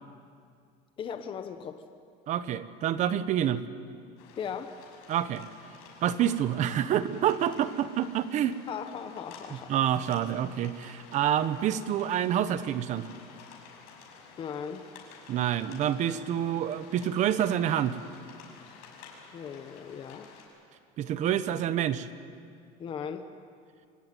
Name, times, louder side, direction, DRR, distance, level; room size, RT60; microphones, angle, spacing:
voice 1, 1.0-1.8 4.4-4.7 8.7-9.8 14.4-14.9 19.3-20.3 22.8-23.3, left 7 dB, 30° left, 8 dB, 1.1 m, -38 dB
voice 2, 2.3-3.6 5.1-5.4 6.0-8.6 9.5-13.1 15.3-18.0 21.0-22.1, right 10 dB, 40° right, 13 dB, 1.1 m, -27 dB
sound 1, 4.2-20.4, left 5 dB, 80° left, 6.5 m, -51 dB
25.5 x 18.0 x 9.4 m, 2.3 s
cardioid pair, 155°, 19 cm